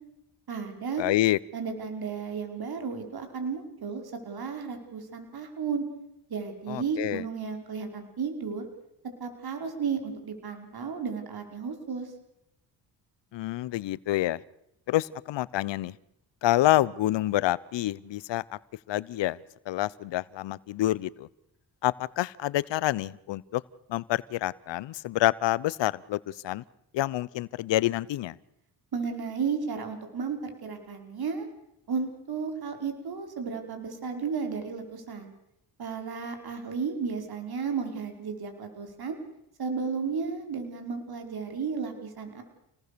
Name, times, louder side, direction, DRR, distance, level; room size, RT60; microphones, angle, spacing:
voice 1, 0.5-1.1 1.5-5.9 6.3-8.7 9.2-12.1 28.9-31.5 31.9-35.3 35.8-39.2 39.6-42.4, right 5 dB, 55° right, 5 dB, 5.3 m, -33 dB
voice 2, 1.0-1.4 6.7-7.2 13.3-14.4 14.9-15.9 16.4-18.6 18.9-19.4 19.7-21.3 21.8-23.6 23.9-26.6 26.9-28.4, left 15 dB, 75° left, 21 dB, 0.9 m, -27 dB
29.0 x 19.0 x 6.9 m, 0.81 s
cardioid pair, 75°, 43 cm